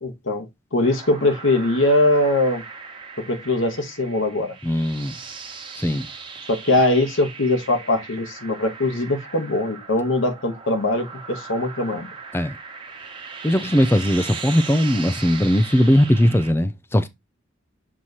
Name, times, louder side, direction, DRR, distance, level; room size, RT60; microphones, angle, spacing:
voice 1, 0.0-0.4 0.7-2.6 3.2-4.5 6.5-12.1, left 2 dB, 80° left, 1.4 m, -21 dB
sound 1, 0.8-16.5, right 5 dB, 25° right, 1.3 m, -38 dB
voice 2, 4.6-5.2 5.8-6.1 12.3-12.6 13.4-17.1, equal, 10° left, 0.4 m, -19 dB
7.4 x 3.1 x 4.1 m
head